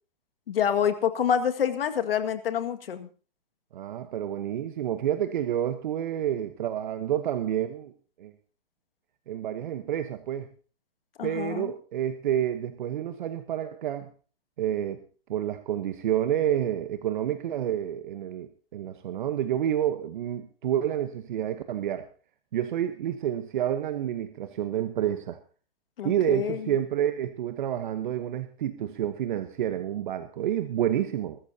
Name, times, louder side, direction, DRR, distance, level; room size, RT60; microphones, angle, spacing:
voice 1, 0.5-3.1 11.2-11.7 26.0-26.7, left 8 dB, 75° left, 8 dB, 2.0 m, -27 dB
voice 2, 3.7-7.9 8.2-8.3 9.3-10.5 11.2-14.1 14.6-15.0 15.3-22.1 22.5-25.4 26.0-31.4, right 11 dB, 55° right, 9 dB, 1.1 m, -29 dB
21.5 x 14.0 x 2.8 m, 0.39 s
hypercardioid pair, 160°, 29 cm